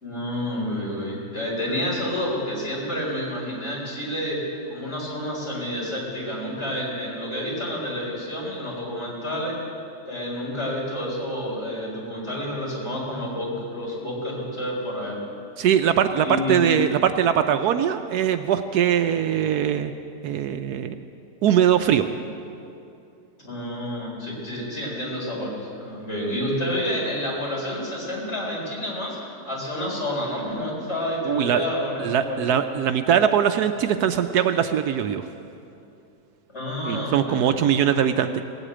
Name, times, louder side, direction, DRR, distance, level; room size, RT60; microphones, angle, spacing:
voice 1, 0.0-4.4 4.7-9.5 10.0-15.2 16.2-16.7 23.4-29.2 29.5-32.4 36.5-37.6, left 1 dB, 40° left, -4 dB, 4.4 m, -29 dB
voice 2, 15.6-19.9 20.2-21.0 21.4-22.1 31.2-31.6 32.0-35.3 36.8-38.4, right 9 dB, 75° right, 8 dB, 1.1 m, -21 dB
18.5 x 8.1 x 8.6 m, 2.6 s
omnidirectional pair, 1.8 m